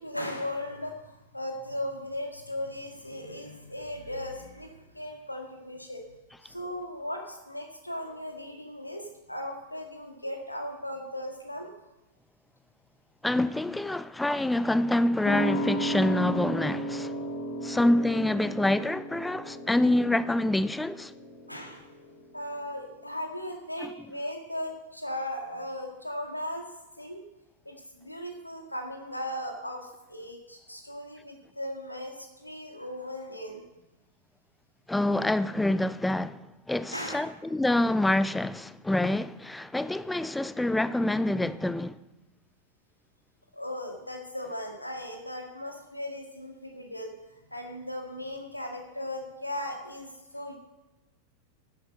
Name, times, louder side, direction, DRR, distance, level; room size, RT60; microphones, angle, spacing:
voice 1, 0.0-6.0 6.4-11.7 21.5-21.9 22.3-26.7 27.0-27.2 27.7-33.6 36.9-37.3 43.5-47.1 47.5-50.6, left 1 dB, 85° left, 2.0 m, -37 dB
voice 2, 13.2-17.1 17.6-21.1 23.8-23.9 34.9-36.4 36.7-42.0, left 1 dB, 5° left, 0.5 m, -26 dB
sound 1, 15.2-22.3 22.6-22.7, equal, 50° left, 1.8 m, -34 dB
10.5 x 8.8 x 6.5 m
figure-of-eight pair, 90°, 0 cm